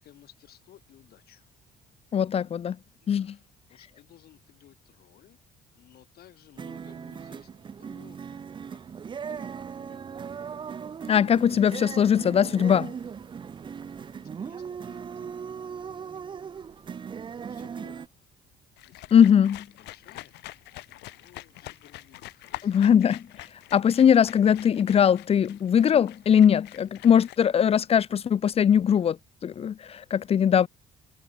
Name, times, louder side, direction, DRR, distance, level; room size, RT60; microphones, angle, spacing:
voice 1, 0.0-1.5 3.0-5.4 5.7-8.4 8.7-8.8 9.3-9.5 9.8-10.3 13.0-13.1 14.2-16.6 17.0-17.1 17.5-18.1 18.9-19.3 19.7-20.3 21.1-22.8, left 12 dB, 65° left, 6.5 m, -57 dB
voice 2, 2.1-2.8 3.1-3.3 11.1-12.9 19.1-19.6 22.6-23.2 23.7-29.2 29.4-30.7, left 8 dB, 35° left, 0.6 m, -20 dB
sound 1, 6.6-18.1, right 6 dB, 30° right, 0.5 m, -38 dB
sound 2, 18.8-27.4, left 18 dB, 85° left, 5.8 m, -45 dB
cardioid pair, 110°, 17 cm